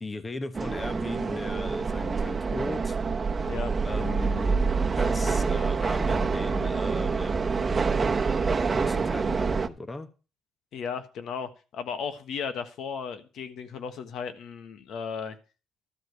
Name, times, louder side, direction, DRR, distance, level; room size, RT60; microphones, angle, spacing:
voice 1, 0.0-3.0 3.8-4.7 5.0-7.3 8.7-10.1, left 3 dB, 25° left, 11 dB, 1.2 m, -37 dB
sound 1, 0.5-9.7, right 4 dB, 30° right, 1.0 m, -26 dB
voice 2, 10.7-15.4, left 6 dB, 75° left, 10 dB, 1.3 m, -35 dB
13.0 x 4.9 x 8.1 m, 0.34 s
cardioid pair, 90°, 0 cm